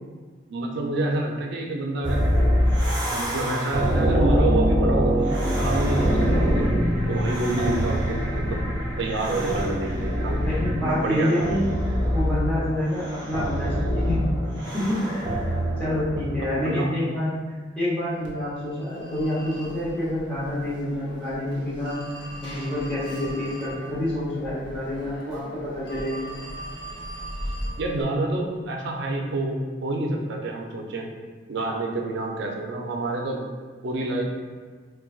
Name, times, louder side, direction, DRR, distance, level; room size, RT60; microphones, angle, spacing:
voice 1, 0.5-2.8 3.1-6.7 7.1-8.6 9.0-10.4 10.8-11.6 16.6-16.9 27.8-31.1 31.5-33.4 33.8-34.2, right 2 dB, 65° right, 1 dB, 0.5 m, -28 dB
sound 1, 2.0-16.6, equal, 25° right, 0.9 m, -24 dB
voice 2, 10.4-14.2 14.7-15.3 15.8-17.3 17.8-22.0 22.4-26.3, left 1 dB, 5° left, -11 dB, 0.8 m, -27 dB
Telephone, 18.2-28.0, equal, 65° left, 0.6 m, -38 dB
3.8 x 2.2 x 2.3 m, 1.5 s
head